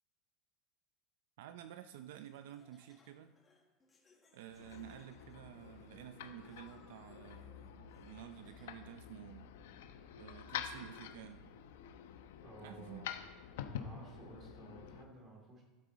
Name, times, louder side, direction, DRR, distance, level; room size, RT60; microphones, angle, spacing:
voice 1, 1.4-3.3 4.3-9.5 10.2-11.5 12.6-13.0, right 11 dB, 75° right, 10 dB, 0.5 m, -51 dB
Laughter, 2.2-9.0, left 3 dB, 15° left, 1.5 m, -70 dB
sound 1, 4.5-15.0, left 9 dB, 85° left, 0.9 m, -48 dB
voice 2, 12.4-13.1 13.8-15.6, right 2 dB, 25° right, 1 dB, 2.6 m, -54 dB
12.5 x 9.5 x 4.1 m, 1.2 s
supercardioid pair, 165°, 0 cm